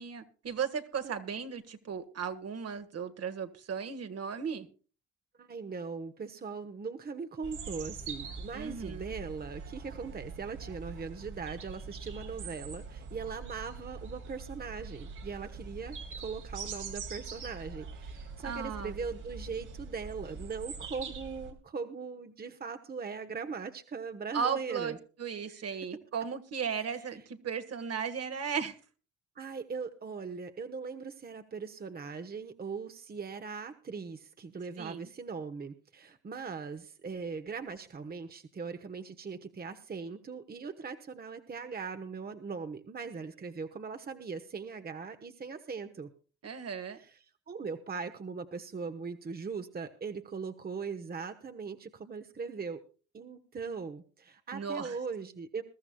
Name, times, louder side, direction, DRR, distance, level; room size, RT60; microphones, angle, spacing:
voice 1, 0.0-4.7 8.5-9.1 18.4-18.9 24.3-28.8 34.8-35.1 46.4-47.0 54.5-55.0, right 6 dB, 55° right, 9 dB, 1.6 m, -36 dB
voice 2, 5.4-25.0 25.5-25.7 26.8-27.0 29.3-46.1 47.0-47.2 47.5-52.8 53.1-55.6, right 5 dB, 30° right, 9 dB, 1.1 m, -40 dB
sound 1, 7.4-21.5, right 4 dB, 80° right, 3.2 m, -43 dB
21.5 x 13.0 x 2.3 m, 0.37 s
cardioid pair, 90°, 30 cm